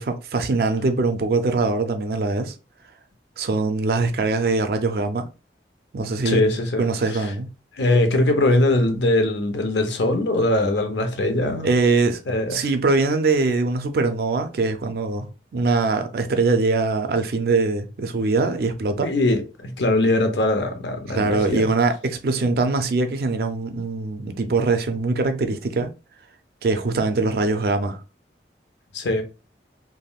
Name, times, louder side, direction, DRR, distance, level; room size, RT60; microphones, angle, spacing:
voice 1, 0.0-2.5 3.4-5.3 5.9-6.5 6.8-7.5 11.6-12.2 12.5-15.3 15.5-19.1 21.1-25.9 26.6-28.0, right 3 dB, 55° right, 0.4 m, -22 dB
voice 2, 6.2-7.3 7.8-11.7 12.3-12.6 19.0-21.7 28.9-29.2, left 2 dB, 80° left, 0.6 m, -21 dB
3.4 x 2.1 x 2.3 m
head